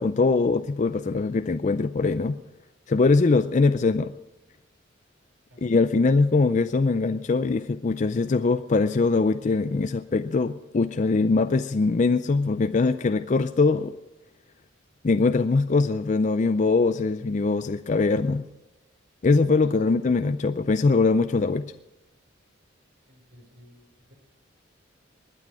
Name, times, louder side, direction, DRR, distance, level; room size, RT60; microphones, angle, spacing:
voice 1, 0.0-2.4 2.9-4.1 5.6-13.9 15.0-18.4 19.2-21.7, left 3 dB, 40° left, 11 dB, 0.4 m, -22 dB
voice 2, 19.6-20.0 23.0-24.1, left 1 dB, 80° right, 3 dB, 4.3 m, -54 dB
21.0 x 9.9 x 4.8 m, 0.99 s
head